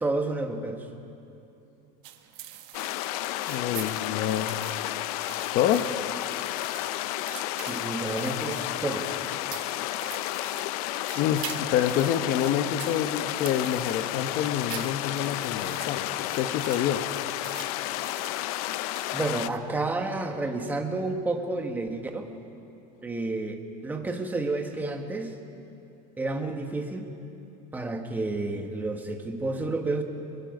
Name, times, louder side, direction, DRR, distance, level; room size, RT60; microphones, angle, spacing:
voice 1, 0.0-0.9 7.7-9.2 19.1-22.3 23.0-25.3 26.2-27.0 27.7-30.0, right 2 dB, 10° right, 4 dB, 1.3 m, -30 dB
sound 1, 2.0-19.6, right 12 dB, 55° right, 1.4 m, -45 dB
sound 2, 2.7-19.5, left 15 dB, 75° left, 0.6 m, -32 dB
voice 2, 3.5-4.6 5.5-6.0 11.1-17.1, left 10 dB, 45° left, 10 dB, 0.9 m, -27 dB
23.5 x 22.0 x 5.3 m, 2.7 s
cardioid pair, 165°, 19 cm